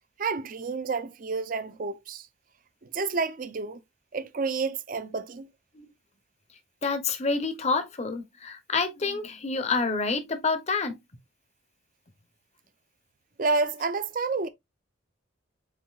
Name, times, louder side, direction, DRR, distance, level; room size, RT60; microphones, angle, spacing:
voice 1, 0.2-2.3 2.9-3.8 4.1-5.5 13.4-14.5, right 4 dB, 45° right, 0.5 m, -29 dB
voice 2, 6.8-11.0, left 4 dB, 35° left, 0.7 m, -28 dB
7.5 x 2.7 x 2.3 m
head